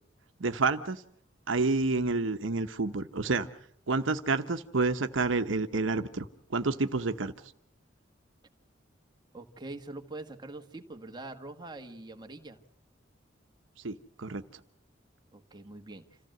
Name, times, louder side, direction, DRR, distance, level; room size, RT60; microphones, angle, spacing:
voice 1, 0.4-1.0 1.5-3.5 3.9-7.3 13.8-14.4, right 3 dB, 80° right, 9 dB, 0.9 m, -29 dB
voice 2, 9.3-12.6 15.3-16.0, right 2 dB, 20° right, 5 dB, 1.4 m, -44 dB
27.0 x 15.0 x 7.8 m, 0.68 s
head